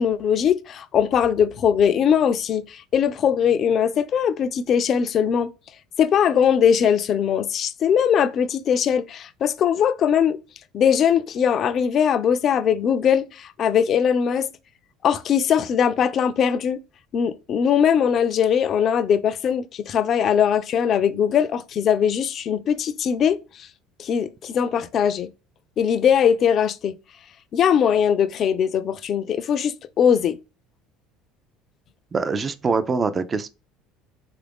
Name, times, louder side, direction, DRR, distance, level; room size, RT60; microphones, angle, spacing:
voice 1, 0.0-5.5 6.0-10.4 10.7-14.5 15.0-16.8 17.1-23.4 24.0-25.3 25.8-26.9 27.5-30.4, left 8 dB, 45° left, 0.3 m, -20 dB
voice 2, 32.1-33.5, right 4 dB, 25° right, 0.4 m, -24 dB
3.3 x 2.4 x 3.4 m
supercardioid pair, 105°, 0 cm